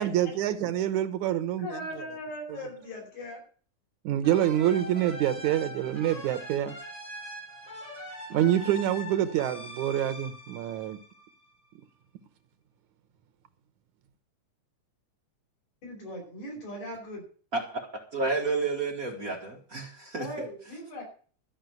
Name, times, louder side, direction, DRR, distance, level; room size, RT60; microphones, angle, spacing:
voice 1, 0.0-1.7 4.0-6.7 8.3-11.0, right 11 dB, 80° right, 2.4 m, -26 dB
voice 2, 1.6-3.4 15.8-17.2 20.2-21.0, left 1 dB, 85° left, 6.6 m, -39 dB
sound 1, 4.2-11.7, equal, 15° left, 3.7 m, -42 dB
voice 3, 17.5-17.8 18.1-20.3, right 3 dB, 35° right, 1.6 m, -30 dB
13.0 x 5.8 x 9.2 m
omnidirectional pair, 3.3 m